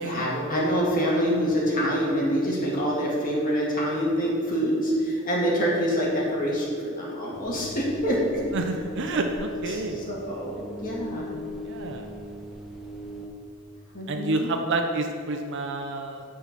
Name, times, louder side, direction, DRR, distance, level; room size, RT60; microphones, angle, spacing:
voice 1, 0.0-8.4 9.7-11.3 13.9-14.5, equal, 40° left, -4 dB, 2.0 m, -26 dB
sound 1, 7.3-13.3, equal, ahead, 0.9 m, -39 dB
voice 2, 8.5-10.0 11.7-12.1 14.1-16.2, right 2 dB, 55° right, 5 dB, 0.6 m, -29 dB
9.9 x 4.7 x 6.0 m, 2.4 s
head